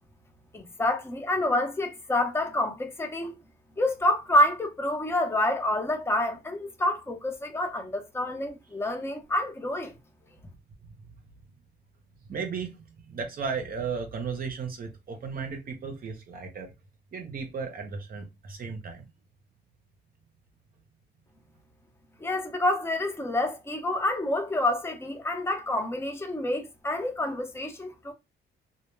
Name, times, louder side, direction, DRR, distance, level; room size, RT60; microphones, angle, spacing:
voice 1, 0.5-3.3 3.8-9.9 22.2-28.1, left 1 dB, 10° left, 0.6 m, -28 dB
voice 2, 12.3-16.7 17.1-19.1, right 5 dB, 45° right, 0.6 m, -35 dB
2.1 x 2.1 x 3.1 m
cardioid pair, 90°, 20 cm